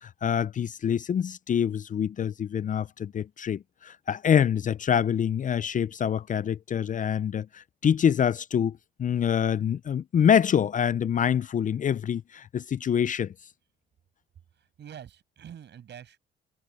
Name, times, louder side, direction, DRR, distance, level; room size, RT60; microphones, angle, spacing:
voice 1, 0.0-13.3, left 8 dB, 40° left, 0.5 m, -26 dB
voice 2, 14.5-16.2, right 9 dB, 60° right, 6.7 m, -46 dB
cardioid pair, 90°, 20 cm